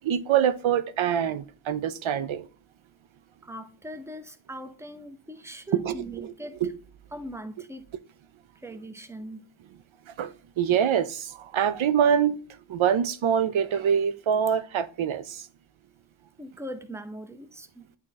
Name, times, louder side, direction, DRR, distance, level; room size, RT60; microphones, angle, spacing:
voice 1, 0.0-2.5 5.7-6.3 6.6-6.7 10.2-12.4 12.7-15.5, right 8 dB, 80° right, 0.6 m, -25 dB
voice 2, 3.4-6.6 7.1-7.8 8.6-9.5 16.4-17.9, right 1 dB, 5° right, 0.7 m, -40 dB
8.7 x 2.9 x 3.7 m
wide cardioid pair, 60°, 47 cm